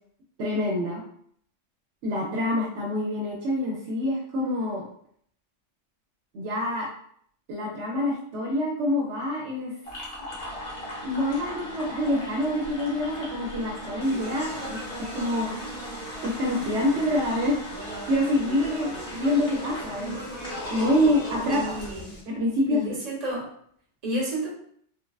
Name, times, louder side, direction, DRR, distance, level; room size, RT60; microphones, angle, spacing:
voice 1, 0.4-1.0 2.0-4.8 6.3-6.9 7.5-9.7 11.0-14.8 15.1-15.5 16.2-17.6 18.1-20.2 20.7-21.6 22.3-23.0, left 1 dB, 70° right, -2 dB, 0.9 m, -26 dB
sound 1, 9.9-21.9, equal, 55° left, 1.0 m, -38 dB
Speech, 14.0-22.2, right 1 dB, 15° left, 0.4 m, -40 dB
voice 2, 21.5-22.1 22.7-23.5 24.0-24.5, equal, 35° right, -4 dB, 0.9 m, -30 dB
3.3 x 2.2 x 2.3 m, 0.64 s
omnidirectional pair, 1.2 m